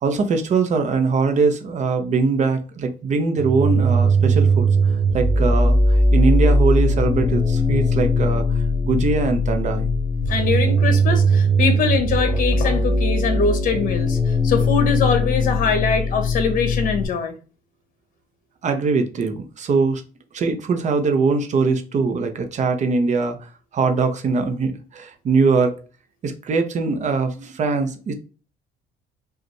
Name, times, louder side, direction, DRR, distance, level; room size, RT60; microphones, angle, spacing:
voice 1, 0.0-4.7 5.1-9.9 18.6-20.0 20.3-23.4 23.7-25.8 26.2-28.1, right 4 dB, 45° right, 0.8 m, -21 dB
sound 1, 3.4-17.0, right 1 dB, 20° right, 1.6 m, -19 dB
voice 2, 10.3-17.3, left 5 dB, 55° left, 1.1 m, -22 dB
5.0 x 2.5 x 3.2 m
cardioid pair, 110°, 17 cm